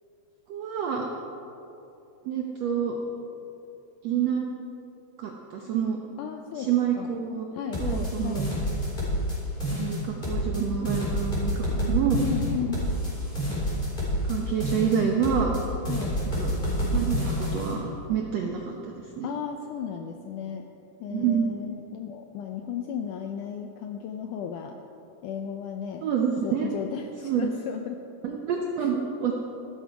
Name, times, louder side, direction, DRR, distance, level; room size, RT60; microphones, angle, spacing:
voice 1, 0.5-1.1 2.2-3.0 4.0-4.4 5.2-6.0 6.5-7.5 7.8-8.5 9.7-12.2 14.2-15.5 16.4-16.5 16.9-17.8 18.1-19.3 21.1-21.7 26.0-26.7 27.2-27.5 28.2-29.3, right 8 dB, 75° right, 0 dB, 1.5 m, -27 dB
voice 2, 6.2-7.1 7.5-8.5 12.2-12.8 15.9-16.4 19.2-20.7 21.0-24.8 25.2-26.1 26.4-28.0 28.8-28.9, left 8 dB, 80° left, 4 dB, 1.8 m, -35 dB
sound 1, 7.7-9.4 9.6-10.6 10.9-14.4 14.6-15.6 15.9-17.7, equal, 15° left, 3.9 m, -28 dB
14.5 x 12.5 x 4.8 m, 2.8 s
omnidirectional pair, 4.3 m